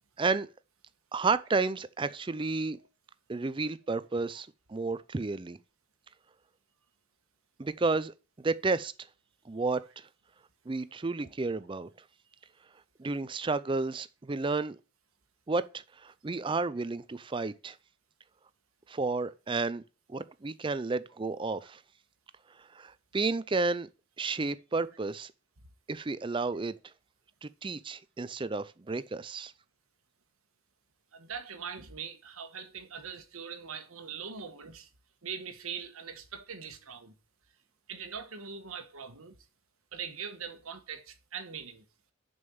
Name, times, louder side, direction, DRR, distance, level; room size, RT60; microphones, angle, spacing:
voice 1, 0.2-0.5 1.1-2.8 3.3-5.6 7.6-8.9 9.5-10.1 10.7-11.9 13.0-14.8 15.5-17.8 18.9-19.8 20.1-21.8 22.7-23.9 24.2-25.3 25.9-26.8 27.4-29.5, right 3 dB, 25° right, 0.4 m, -31 dB
voice 2, 31.1-34.9 35.2-37.1 37.9-39.4 39.9-41.8, right 6 dB, 85° right, 1.3 m, -42 dB
6.6 x 5.4 x 7.0 m
head